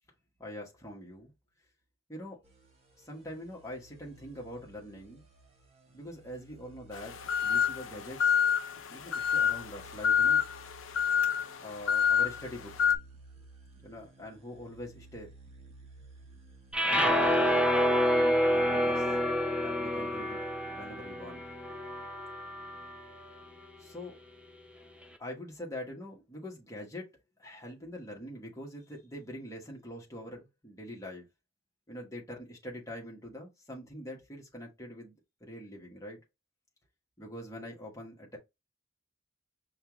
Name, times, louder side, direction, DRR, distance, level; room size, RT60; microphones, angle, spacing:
voice 1, 0.4-1.3 2.1-2.4 3.0-5.2 5.9-8.4 8.9-10.4 11.6-12.8 13.8-15.3 16.8-17.1 18.1-19.1 19.6-20.4 20.7-21.4 23.8-24.2 25.2-27.1 27.4-31.3 31.9-35.1 35.4-36.2 37.2-38.4, left 1 dB, 15° left, 1.2 m, -44 dB
sound 1, 2.4-17.5, right 3 dB, 30° right, 0.8 m, -56 dB
sound 2, 6.9-13.0, left 8 dB, 75° left, 0.6 m, -28 dB
sound 3, 16.7-23.0, equal, 5° right, 0.4 m, -28 dB
5.5 x 2.4 x 3.0 m
head